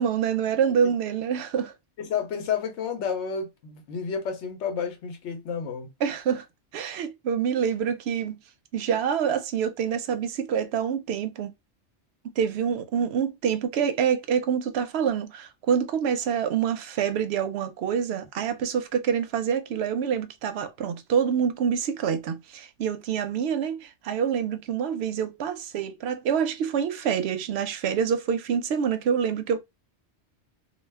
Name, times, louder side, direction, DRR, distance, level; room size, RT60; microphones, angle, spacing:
voice 1, 0.0-1.7 6.0-6.5 6.7-8.4 8.7-11.5 12.4-29.6, right 7 dB, 70° right, 0.8 m, -26 dB
voice 2, 2.0-5.9, left 6 dB, 85° left, 0.9 m, -30 dB
2.3 x 2.2 x 3.3 m
omnidirectional pair, 1.2 m